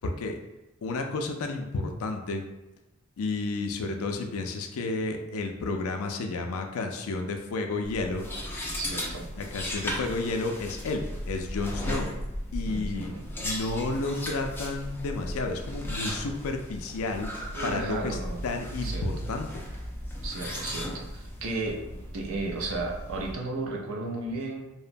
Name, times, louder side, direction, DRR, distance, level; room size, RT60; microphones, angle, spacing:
voice 1, 0.0-0.4 0.8-2.4 3.2-8.2 9.4-12.1 12.5-13.1 13.4-18.2 18.4-19.6, left 3 dB, 85° left, 4 dB, 0.4 m, -31 dB
sound 1, 7.8-23.3, equal, 10° left, 0.3 m, -36 dB
voice 2, 8.7-9.3 12.7-13.3 17.5-18.4 18.8-19.0 20.2-21.9 22.1-24.7, right 2 dB, 70° right, 0 dB, 0.5 m, -34 dB
2.9 x 2.1 x 2.5 m, 0.97 s
head